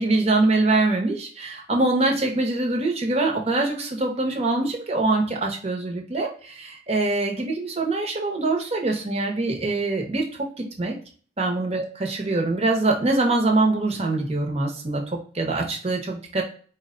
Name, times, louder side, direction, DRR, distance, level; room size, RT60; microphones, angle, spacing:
voice 1, 0.0-11.0 11.4-16.4, right 2 dB, 30° right, 1 dB, 0.8 m, -24 dB
4.4 x 2.2 x 3.7 m, 0.43 s
head